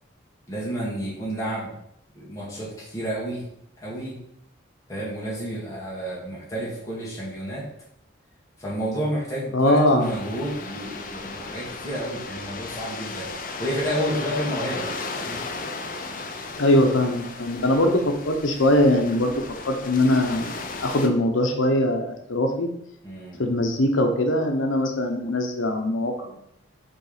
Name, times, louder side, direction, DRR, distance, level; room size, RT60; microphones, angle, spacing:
voice 1, 0.5-1.7 2.1-3.4 3.8-4.2 4.9-7.6 8.6-13.3 13.6-14.9 15.1-15.4 23.0-23.4, right 1 dB, 15° left, -7 dB, 2.2 m, -30 dB
voice 2, 9.5-10.1 16.6-22.7 23.4-26.5, left 1 dB, 85° left, 4 dB, 1.0 m, -22 dB
sound 1, 10.0-21.1, left 3 dB, 45° left, 0.6 m, -35 dB
5.2 x 3.6 x 5.1 m, 0.77 s
head